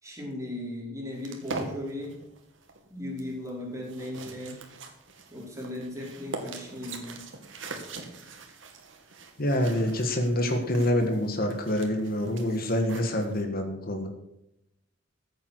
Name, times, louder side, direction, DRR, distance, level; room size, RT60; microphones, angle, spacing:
voice 1, 0.0-2.1 2.9-4.6 5.3-7.2, left 1 dB, 15° right, -4 dB, 5.0 m, -37 dB
sound 1, 1.2-13.4, right 3 dB, 85° right, 2.3 m, -42 dB
voice 2, 9.4-14.1, left 1 dB, 50° left, 5 dB, 1.8 m, -26 dB
14.5 x 8.6 x 6.4 m, 0.83 s
head